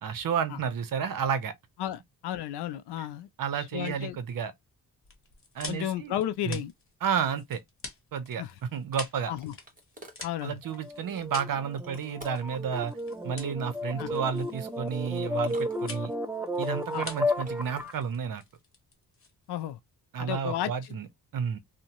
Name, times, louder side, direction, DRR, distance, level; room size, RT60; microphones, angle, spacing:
voice 1, 0.0-1.5 3.0-3.1 3.4-4.5 5.5-6.2 6.5-6.6 7.0-7.6 8.1-8.4 8.7-9.3 10.4-12.9 13.2-16.1 16.6-18.4 20.1-21.1 21.3-21.6, right 7 dB, 60° right, 0.7 m, -31 dB
voice 2, 1.8-3.3 3.5-4.2 5.7-6.7 8.4-8.5 9.3-9.5 10.2-10.6 14.0-14.1 16.9-17.1 19.5-19.8 20.2-20.7, left 11 dB, 85° left, 0.5 m, -33 dB
sound 1, 5.0-19.7, left 4 dB, 35° left, 1.0 m, -46 dB
sound 2, 8.6-10.3 11.8-12.6 14.0-14.4 15.3-16.4 17.2-17.9, right 1 dB, 20° right, 1.1 m, -52 dB
FX arpeggio reverted, 10.7-18.0, left 1 dB, 5° right, 0.4 m, -33 dB
2.6 x 2.1 x 2.9 m
cardioid pair, 95°, 39 cm